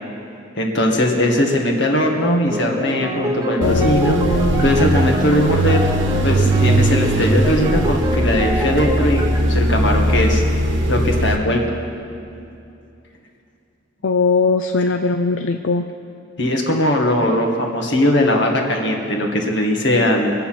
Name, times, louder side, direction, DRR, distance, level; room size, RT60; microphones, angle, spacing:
voice 1, 0.6-4.2 4.6-5.8 6.2-10.4 10.9-11.6 16.4-20.3, left 1 dB, 60° left, 1 dB, 1.9 m, -19 dB
sound 1, 2.5-9.4, equal, 20° right, 0.9 m, -27 dB
voice 2, 3.6-4.7 14.0-15.8, left 4 dB, 80° left, 6 dB, 0.5 m, -20 dB
sound 2, 3.6-11.4, right 1 dB, 70° right, 1.3 m, -19 dB
24.0 x 8.3 x 5.9 m, 2.6 s
head